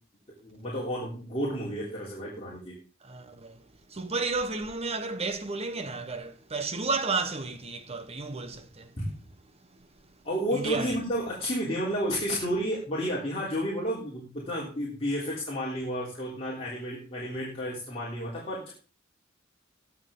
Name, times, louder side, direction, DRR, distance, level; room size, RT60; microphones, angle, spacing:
voice 1, 0.4-2.8 9.0-9.1 10.2-18.7, equal, 30° left, 3.4 m, -31 dB
voice 2, 3.0-9.0 9.7-9.9 10.5-11.0, right 3 dB, 30° right, 1.0 m, -32 dB
19.5 x 7.3 x 3.8 m
head